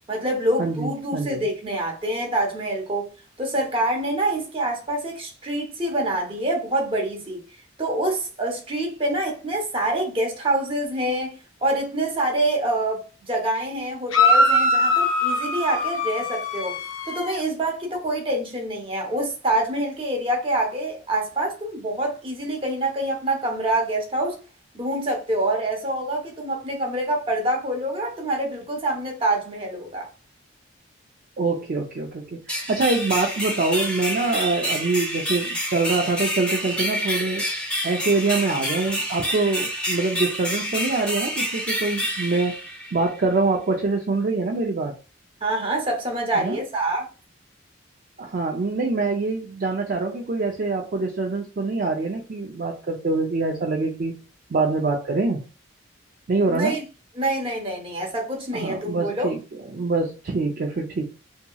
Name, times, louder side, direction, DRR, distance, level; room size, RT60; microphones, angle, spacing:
voice 1, 0.1-3.1 3.4-7.4 7.8-16.7 17.1-24.4 24.7-30.1 45.4-47.1 56.5-56.8 57.2-59.3, right 1 dB, 25° right, 0.8 m, -26 dB
voice 2, 0.6-1.4 31.4-37.4 37.8-42.6 42.9-44.9 46.3-46.6 48.2-54.1 54.5-55.4 56.3-56.8 58.5-59.4 59.7-61.0, right 3 dB, 45° right, 0.4 m, -24 dB
sound 1, 14.1-17.4, left 2 dB, 85° left, 0.6 m, -21 dB
sound 2, 32.5-43.2, equal, 5° left, 0.8 m, -28 dB
2.9 x 2.8 x 2.2 m
head